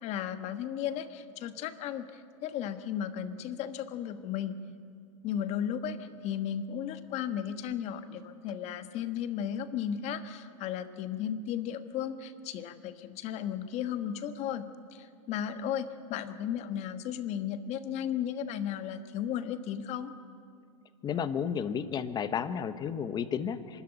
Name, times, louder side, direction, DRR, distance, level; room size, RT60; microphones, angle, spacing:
voice 1, 0.0-4.6 5.2-20.1, left 9 dB, 40° left, 10 dB, 1.4 m, -35 dB
voice 2, 21.0-23.8, left 7 dB, 25° left, 13 dB, 1.0 m, -32 dB
24.5 x 13.5 x 10.0 m, 2.4 s
supercardioid pair, 130°, 17 cm